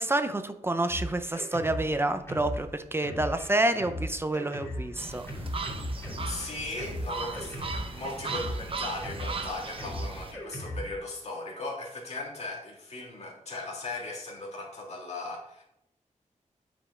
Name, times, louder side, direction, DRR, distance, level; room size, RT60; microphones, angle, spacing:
voice 1, 0.0-5.2, right 2 dB, 20° right, 9 dB, 0.5 m, -28 dB
Drum kit, 0.9-11.0, left 1 dB, 20° left, 2.8 m, -38 dB
sound 1, 5.0-10.3, right 4 dB, 45° right, 0.9 m, -37 dB
voice 2, 6.2-15.6, left 2 dB, 55° left, -2 dB, 2.1 m, -38 dB
8.8 x 5.1 x 3.7 m, 0.79 s
wide cardioid pair, 140°, 13 cm